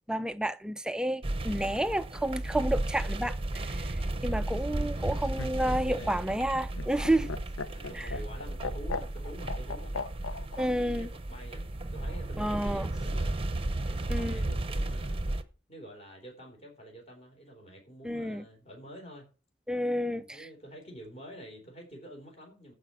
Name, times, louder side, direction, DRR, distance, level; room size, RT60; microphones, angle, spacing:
voice 1, 0.1-7.3 7.9-8.1 10.6-11.1 12.4-12.9 14.1-14.4 18.0-18.4 19.7-20.5, right 1 dB, 5° right, 0.4 m, -30 dB
sound 1, 1.2-15.4, right 1 dB, 30° right, 0.8 m, -34 dB
Laughter, 5.0-10.7 11.9-12.6, left 4 dB, 80° left, 0.8 m, -38 dB
voice 2, 5.6-6.3 7.7-9.9 10.8-13.4 13.9-15.2 15.7-19.3 20.1-22.7, right 1 dB, 35° left, 4.0 m, -48 dB
14.5 x 5.0 x 5.7 m
head